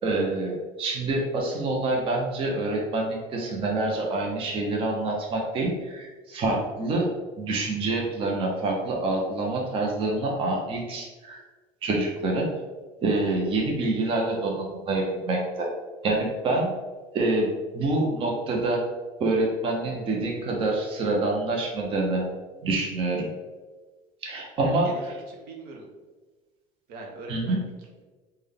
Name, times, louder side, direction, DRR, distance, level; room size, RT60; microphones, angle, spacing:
voice 1, 0.0-7.1 7.4-11.4 11.8-12.5 13.0-15.7 16.0-16.7 17.1-18.8 19.2-22.3 22.6-23.3 24.2-24.9 27.3-27.6, right 2 dB, 35° right, -1 dB, 0.6 m, -26 dB
voice 2, 24.6-25.0 25.3-25.9 26.9-28.0, right 2 dB, 70° right, 1 dB, 0.8 m, -42 dB
3.5 x 2.2 x 3.5 m, 1.3 s
cardioid pair, 130°, 16 cm